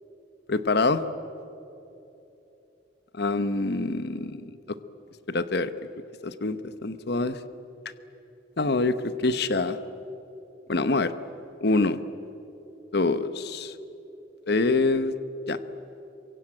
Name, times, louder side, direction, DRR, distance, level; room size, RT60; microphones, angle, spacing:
voice 1, 0.5-1.0 3.1-4.4 5.3-5.7 6.2-7.4 8.6-9.8 10.7-11.1 11.6-12.0 12.9-13.7 14.5-15.1 15.5-15.6, left 3 dB, 65° left, 12 dB, 1.0 m, -25 dB
27.0 x 24.0 x 9.0 m, 2.9 s
head